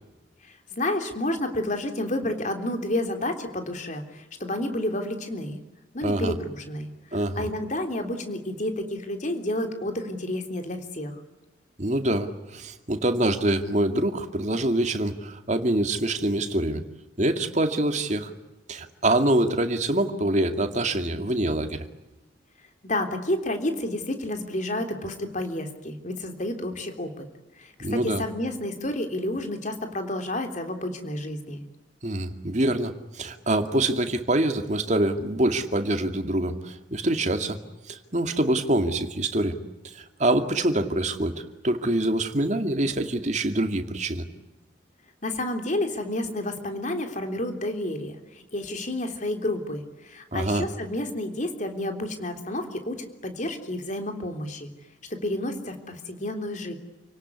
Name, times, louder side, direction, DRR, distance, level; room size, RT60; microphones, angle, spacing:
voice 1, 0.7-5.6 5.9-11.1 22.8-27.2 27.6-31.6 45.2-48.1 48.5-54.7 55.1-56.7, left 1 dB, 40° left, 6 dB, 3.4 m, -30 dB
voice 2, 6.0-6.3 7.1-7.5 11.8-16.8 17.2-18.3 18.7-21.8 27.8-28.2 32.0-37.6 37.9-39.6 39.8-41.3 41.6-44.2 50.3-50.6, right 1 dB, 40° right, 7 dB, 2.3 m, -25 dB
29.5 x 18.0 x 9.8 m, 1.0 s
head